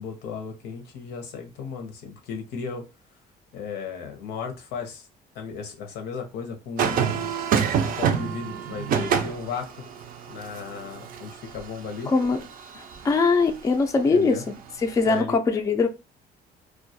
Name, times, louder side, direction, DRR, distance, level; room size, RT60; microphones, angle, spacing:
voice 1, 0.0-2.8 3.5-5.1 5.3-7.3 7.9-9.7 10.3-12.1 14.1-14.4 15.1-15.4, left 5 dB, 80° left, 0.7 m, -35 dB
sound 1, 6.8-13.1 14.9-15.2, right 7 dB, 55° right, 0.4 m, -27 dB
voice 2, 12.1-12.4 13.0-14.4 14.8-15.9, left 4 dB, 20° left, 0.3 m, -21 dB
2.2 x 2.2 x 2.7 m
cardioid pair, 110°, 17 cm